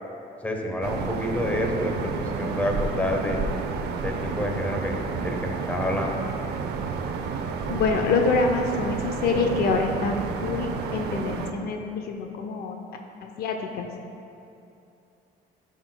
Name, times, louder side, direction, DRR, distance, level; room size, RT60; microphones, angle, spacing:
voice 1, 0.4-3.4 4.0-6.1, left 1 dB, 10° left, 1 dB, 1.0 m, -28 dB
sound 1, 0.8-11.5, right 5 dB, 75° right, 0.5 m, -30 dB
voice 2, 7.7-12.8 13.2-13.9, left 4 dB, 65° left, 4 dB, 0.6 m, -26 dB
11.5 x 5.9 x 2.2 m, 2.7 s
cardioid pair, 110°, 17 cm